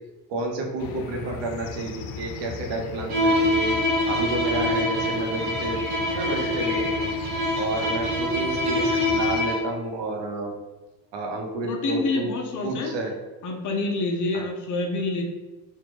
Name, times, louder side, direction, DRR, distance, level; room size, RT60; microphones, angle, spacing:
voice 1, 0.3-3.7 4.1-7.1 7.6-10.5 11.1-12.3 12.6-13.1 14.3-14.4, right 2 dB, 60° right, 1 dB, 0.9 m, -30 dB
sound 1, 0.8-9.4, left 5 dB, 80° left, 0.6 m, -37 dB
Bowed string instrument, 3.1-9.8, left 1 dB, 85° right, 1.2 m, -25 dB
voice 2, 11.6-13.0 13.4-15.2, left 3 dB, 40° left, 2 dB, 0.6 m, -27 dB
3.2 x 2.4 x 3.5 m, 1.2 s
supercardioid pair, 110°, 49 cm